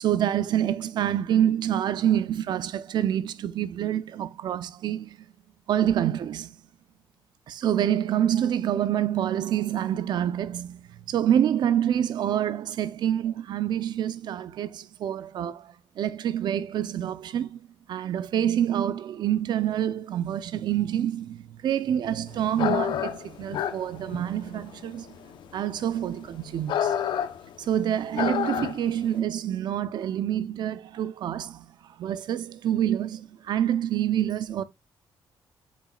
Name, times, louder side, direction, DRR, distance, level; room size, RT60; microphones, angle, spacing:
voice 1, 0.0-5.2 5.7-6.5 7.5-15.7 16.0-17.6 17.9-21.4 21.6-25.1 25.5-26.9 27.7-31.6 32.0-34.6, right 10 dB, 65° right, 0.6 m, -27 dB
sound 1, 22.5-29.0, left 9 dB, 80° left, 0.8 m, -29 dB
8.4 x 6.2 x 2.4 m
wide cardioid pair, 165°, 8 cm